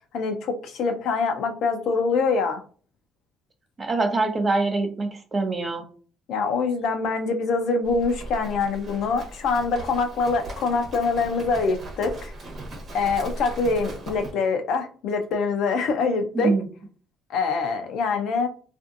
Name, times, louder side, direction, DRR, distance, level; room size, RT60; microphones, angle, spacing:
voice 1, 0.1-2.6 6.3-12.3 12.9-16.6 17.3-18.5, left 4 dB, 70° left, 0.5 m, -24 dB
voice 2, 3.8-5.8 16.3-16.7, right 3 dB, 35° right, 0.7 m, -24 dB
Livestock farm animals working animals, 7.8-14.3, right 1 dB, 55° right, 1.1 m, -38 dB
2.6 x 2.4 x 2.6 m
supercardioid pair, 70°, 0 cm